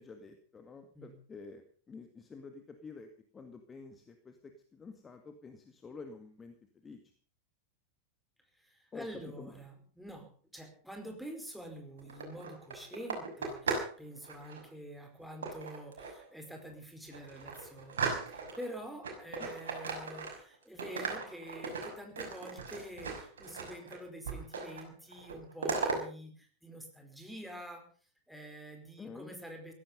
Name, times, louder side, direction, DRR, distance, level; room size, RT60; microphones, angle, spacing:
voice 1, 0.0-6.5 6.8-7.0 8.9-9.5 19.4-19.5 29.0-29.3, left 4 dB, 20° left, 7 dB, 2.1 m, -49 dB
voice 2, 8.5-27.9 28.3-29.7, equal, ahead, 3 dB, 4.8 m, -47 dB
sound 1, 12.0-14.0 14.2-14.6 15.4-16.2 16.7-16.8 17.1-18.7 19.0-20.5 20.8-24.0 24.3-24.9 25.1-26.0, right 5 dB, 65° right, 6.1 m, -37 dB
17.0 x 15.0 x 5.3 m, 0.43 s
figure-of-eight pair, 90°, 0 cm